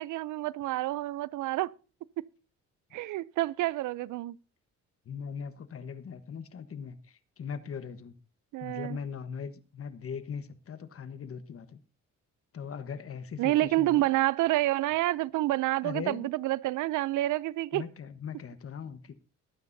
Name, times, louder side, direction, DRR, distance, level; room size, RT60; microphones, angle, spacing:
voice 1, 0.0-1.7 2.2-2.3 2.9-4.4 8.5-9.0 13.4-17.8, right 16 dB, 80° right, 0.5 m, -28 dB
voice 2, 5.0-8.1 8.6-11.8 12.5-14.1 15.8-16.3 17.7-19.1, left 6 dB, 50° left, 1.3 m, -40 dB
21.5 x 9.2 x 2.7 m
cardioid pair, 90°, 30 cm